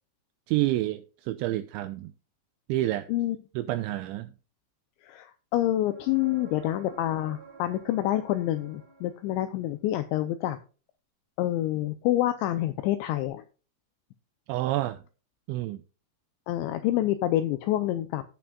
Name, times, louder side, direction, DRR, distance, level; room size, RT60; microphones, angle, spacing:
voice 1, 0.5-2.1 2.7-3.1 3.6-4.3 14.5-15.0 15.5-15.8, right 15 dB, 85° right, 2.6 m, -28 dB
voice 2, 5.0-10.6 11.4-13.4 16.5-18.2, left 14 dB, 85° left, 2.6 m, -27 dB
sound 1, 5.8-9.6 13.3-13.4, right 6 dB, 40° right, 1.9 m, -49 dB
17.0 x 6.0 x 2.3 m
omnidirectional pair, 5.8 m